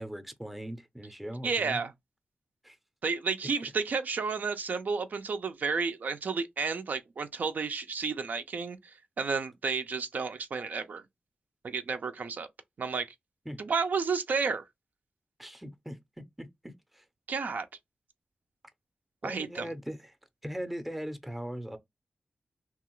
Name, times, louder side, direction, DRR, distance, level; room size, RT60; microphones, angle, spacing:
voice 1, 0.0-1.8 2.6-2.8 13.5-13.6 15.4-17.0 19.2-20.2 20.4-21.8, equal, 5° right, 0.5 m, -40 dB
voice 2, 1.4-1.9 3.0-11.0 11.6-12.5 12.8-13.1 13.6-14.6 17.3-17.7 19.2-19.7, right 5 dB, 70° right, 0.4 m, -31 dB
2.9 x 2.3 x 3.0 m
wide cardioid pair, 105°, 3 cm